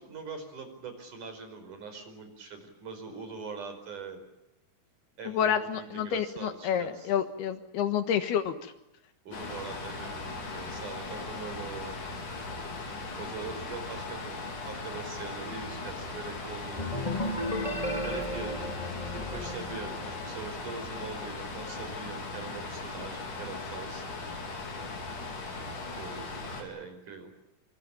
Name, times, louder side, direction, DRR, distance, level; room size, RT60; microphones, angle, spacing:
voice 1, 0.0-4.2 5.2-7.1 9.2-12.0 13.1-16.9 18.0-18.7 19.1-24.0 26.0-27.3, right 4 dB, 45° right, 7 dB, 6.3 m, -42 dB
voice 2, 5.3-8.6, left 8 dB, 70° left, 9 dB, 3.3 m, -29 dB
sound 1, 9.3-26.6, left 3 dB, 50° left, 5.6 m, -38 dB
sound 2, 16.8-20.5, left 1 dB, 10° left, 3.7 m, -34 dB
26.5 x 26.0 x 7.3 m, 0.90 s
omnidirectional pair, 4.9 m